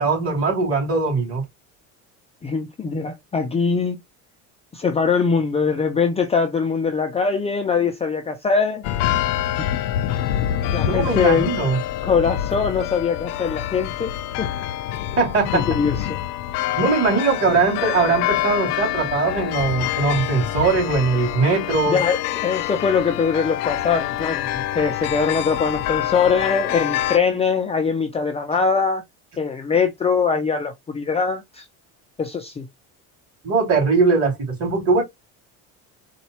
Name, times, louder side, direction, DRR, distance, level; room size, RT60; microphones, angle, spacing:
voice 1, 0.0-1.4 10.8-11.8 15.2-15.7 16.8-22.0 33.4-35.0, right 4 dB, 40° right, 2.8 m, -20 dB
voice 2, 2.4-4.0 4.7-8.8 10.7-11.5 12.0-14.1 14.4-14.5 15.5-16.2 21.6-29.0 29.4-31.7 32.2-32.7, left 5 dB, 20° left, 0.5 m, -22 dB
sound 1, 8.8-27.2, left 13 dB, 85° left, 0.5 m, -26 dB
4.1 x 2.3 x 2.8 m
cardioid pair, 120°, 35 cm